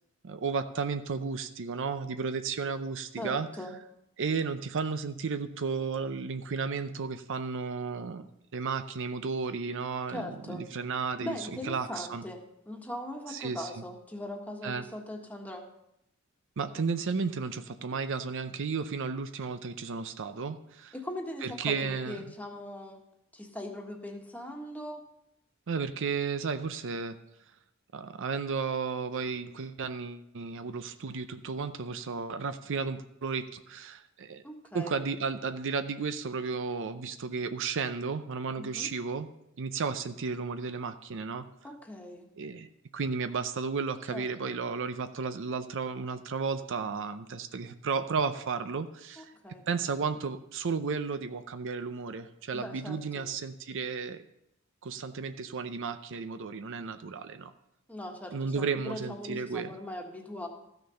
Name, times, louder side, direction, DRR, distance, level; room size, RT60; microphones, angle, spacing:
voice 1, 0.2-3.5 4.2-8.3 8.5-12.2 13.3-13.7 14.6-14.8 16.6-20.9 21.4-22.2 25.7-27.2 27.9-34.4 34.7-39.3 39.6-41.5 42.4-42.7 42.9-49.3 49.7-54.2 54.8-57.5 58.3-59.7, right 5 dB, 60° right, 10 dB, 0.6 m, -33 dB
voice 2, 3.2-3.7 10.1-10.6 11.2-12.4 12.6-15.6 20.9-23.0 23.3-25.0 34.4-35.0 38.6-38.9 41.6-42.2 44.1-44.5 49.2-49.6 52.5-53.3 57.9-60.5, left 1 dB, 5° left, 2 dB, 1.5 m, -40 dB
14.0 x 6.6 x 5.6 m, 0.79 s
head